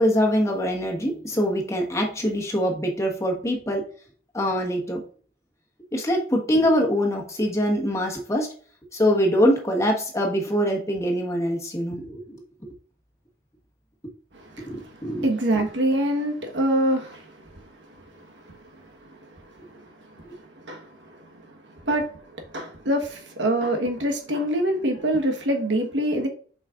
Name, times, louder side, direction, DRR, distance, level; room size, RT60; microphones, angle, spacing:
voice 1, 0.0-3.8 4.3-5.0 5.9-8.5 8.9-12.4 14.7-15.3, equal, 15° left, 0 dB, 1.4 m, -23 dB
voice 2, 15.2-17.2 20.6-20.9 21.9-22.1 22.5-26.3, right 1 dB, 90° right, 3 dB, 1.4 m, -24 dB
7.3 x 5.2 x 2.5 m, 0.43 s
head